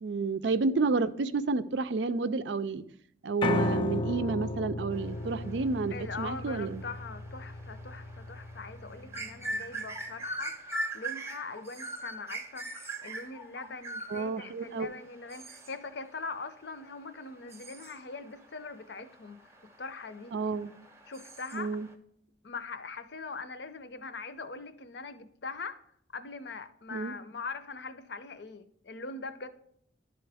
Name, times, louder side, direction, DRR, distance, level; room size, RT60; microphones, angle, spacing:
voice 1, 0.0-2.8 3.2-6.8 14.1-14.9 20.3-20.7 21.5-21.9 26.9-27.1, right 4 dB, 75° right, 13 dB, 0.4 m, -30 dB
Piano, 3.4-9.6, left 2 dB, 30° left, 0.3 m, -35 dB
sound 1, 4.9-21.9, right 1 dB, 15° right, 0.6 m, -43 dB
voice 2, 5.9-19.5 19.8-20.3 21.1-21.8 22.4-25.8 26.1-29.5, left 4 dB, 65° left, 10 dB, 0.6 m, -42 dB
11.5 x 3.8 x 3.4 m, 0.68 s
head